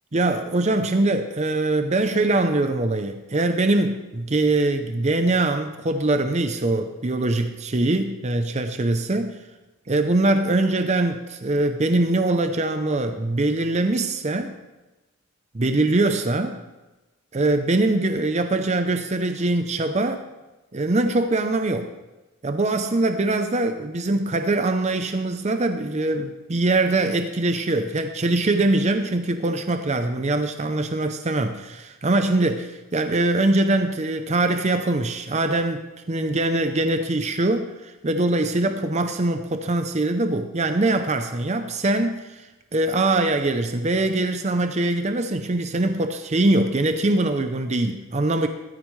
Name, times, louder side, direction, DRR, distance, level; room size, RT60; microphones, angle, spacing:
voice 1, 0.1-9.3 9.9-14.5 15.5-16.6 17.3-20.2 20.7-21.9 22.4-35.8 36.1-42.4 42.7-48.5, right 2 dB, 30° right, 7 dB, 0.6 m, -22 dB
15.0 x 13.0 x 3.2 m, 1.1 s
head